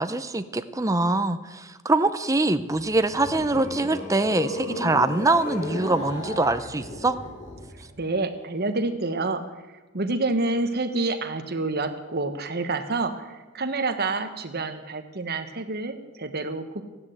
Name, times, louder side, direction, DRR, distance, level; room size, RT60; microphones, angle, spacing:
voice 1, 0.0-7.2, right 2 dB, 15° right, 10 dB, 0.7 m, -24 dB
sound 1, 2.6-7.9, left 1 dB, 40° left, 3.6 m, -35 dB
voice 2, 8.0-9.4 9.9-16.8, right 3 dB, 45° right, 7 dB, 1.3 m, -28 dB
15.0 x 10.5 x 8.0 m, 1.2 s
head